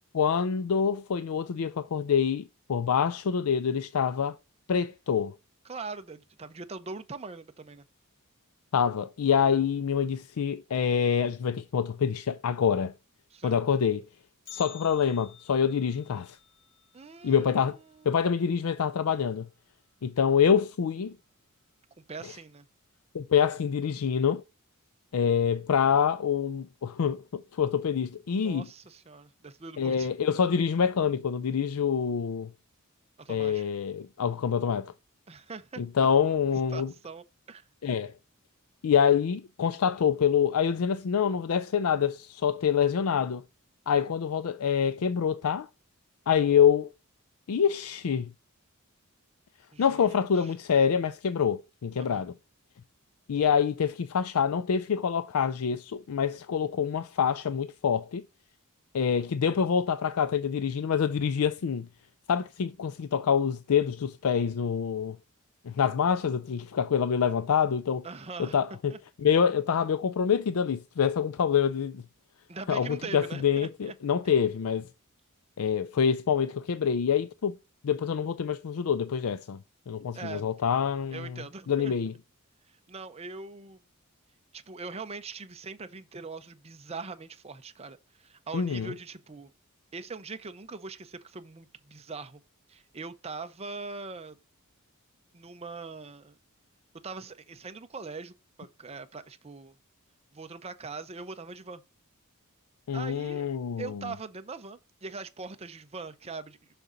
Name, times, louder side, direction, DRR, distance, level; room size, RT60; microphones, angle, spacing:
voice 1, 0.1-4.4 4.7-5.3 8.7-12.9 13.4-14.0 14.5-16.4 17.2-17.8 18.1-19.5 20.0-21.2 23.1-24.4 25.1-28.7 29.8-32.5 33.3-34.9 35.8-36.9 37.8-38.1 38.8-43.4 43.9-45.7 46.3-46.9 47.5-48.3 49.8-52.3 53.3-58.2 58.9-61.9 62.3-65.2 65.6-68.1 68.4-68.9 69.2-72.0 72.7-74.9 75.6-77.5 77.8-79.6 79.9-81.4 81.7-82.1 88.5-88.9 102.9-104.0, left 7 dB, 75° left, 0.4 m, -26 dB
voice 2, 5.6-7.8 13.3-13.6 16.9-18.3 22.1-22.7 28.3-30.1 33.2-33.7 35.3-35.8 36.7-37.7 49.7-50.5 52.0-52.3 68.0-68.6 68.9-69.0 72.5-73.9 80.1-80.4 81.1-82.0 82.9-83.8 84.5-89.5 89.9-92.4 92.7-94.4 95.3-96.4 97.0-99.8 100.3-101.8 102.9-103.5 103.8-106.6, right 4 dB, 30° right, 0.7 m, -42 dB
Bell, 14.5-18.5 18.8-18.9 19.4-19.5 20.3-20.4 21.2-21.4 21.8-21.9, left 10 dB, 55° left, 3.5 m, -51 dB
6.7 x 6.1 x 3.9 m
head